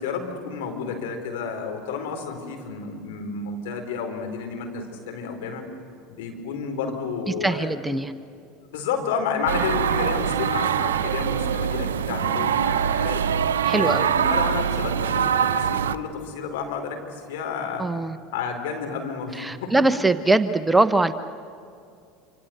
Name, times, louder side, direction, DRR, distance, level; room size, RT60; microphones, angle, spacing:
voice 1, 0.0-5.6 6.1-7.7 8.7-13.2 13.8-17.9 18.3-19.8, left 5 dB, 70° left, 4 dB, 4.5 m, -31 dB
voice 2, 7.4-8.1 13.6-14.1 17.8-18.2 19.4-21.1, right 2 dB, 10° right, 11 dB, 1.1 m, -21 dB
sound 1, 9.5-15.9, right 8 dB, 80° right, 0.8 m, -23 dB
27.0 x 26.5 x 8.0 m, 2.4 s
hypercardioid pair, 80°, 0 cm